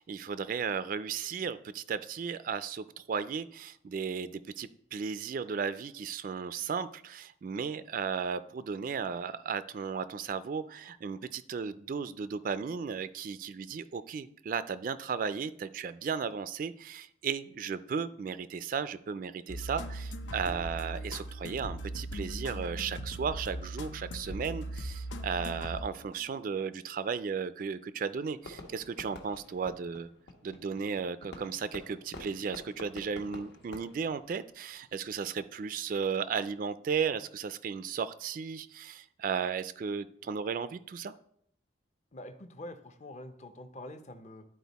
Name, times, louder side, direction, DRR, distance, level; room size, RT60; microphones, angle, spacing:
voice 1, 0.0-30.1 30.4-41.1, right 6 dB, 50° right, 14 dB, 0.3 m, -35 dB
sound 1, 19.5-26.3, right 1 dB, 85° left, 0.7 m, -39 dB
Fireworks, 28.4-34.9, left 1 dB, 65° left, 1.1 m, -49 dB
voice 2, 42.1-44.4, left 1 dB, 40° left, 9 dB, 0.6 m, -45 dB
11.0 x 4.3 x 4.1 m, 0.68 s
head